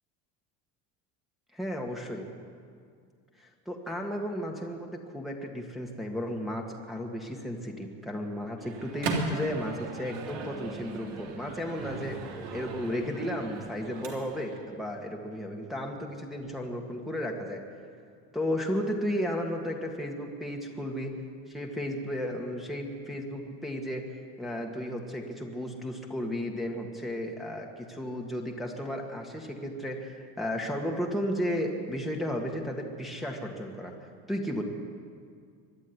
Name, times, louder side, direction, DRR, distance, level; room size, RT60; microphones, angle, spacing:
voice 1, 1.5-2.3 3.4-12.2 12.5-17.6 18.3-21.2 21.5-24.1 24.4-33.9 34.3-34.6, equal, ahead, 0 dB, 1.7 m, -34 dB
Microwave oven, 8.6-14.6, right 3 dB, 70° right, 3.4 m, -37 dB
24.0 x 11.0 x 9.8 m, 2.2 s
cardioid pair, 150°, 37 cm